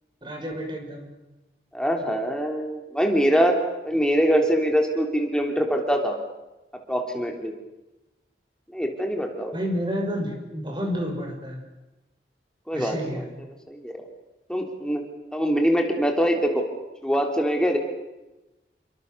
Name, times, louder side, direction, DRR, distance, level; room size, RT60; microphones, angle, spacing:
voice 1, 0.2-1.0 9.5-11.6 12.7-13.2, equal, 25° right, 2 dB, 6.3 m, -30 dB
voice 2, 1.7-3.6 3.8-6.2 6.9-7.5 8.7-9.6 12.7-13.3 13.7-13.9 14.5-15.0 15.3-16.6 17.0-17.8, equal, 5° left, 2 dB, 3.3 m, -23 dB
29.0 x 24.0 x 6.9 m, 1.0 s
head